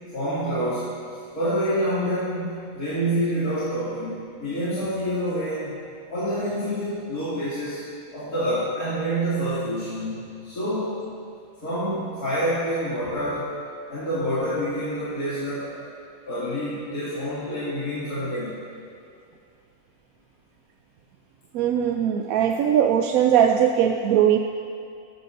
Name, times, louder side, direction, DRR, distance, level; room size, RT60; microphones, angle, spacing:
voice 1, 0.1-0.9 1.3-5.7 6.1-7.8 8.1-11.0 11.6-13.5 13.9-15.8 16.3-18.5, equal, 85° left, -13 dB, 3.2 m, -27 dB
voice 2, 21.5-24.4, right 9 dB, 75° right, 3 dB, 1.0 m, -20 dB
14.5 x 13.0 x 2.7 m, 2.4 s
omnidirectional pair, 1.5 m